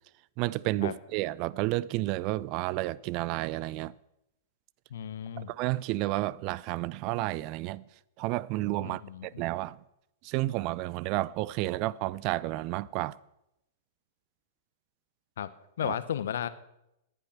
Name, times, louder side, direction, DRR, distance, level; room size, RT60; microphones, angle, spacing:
voice 1, 0.4-3.9 5.5-7.8 8.2-9.8 10.2-13.2 15.8-16.0, right 18 dB, 40° right, 0.5 m, -31 dB
voice 2, 4.9-5.5 8.8-9.4 15.4-15.5 15.8-16.5, left 9 dB, 65° left, 1.1 m, -34 dB
19.0 x 11.0 x 5.9 m
figure-of-eight pair, 100°, 0 cm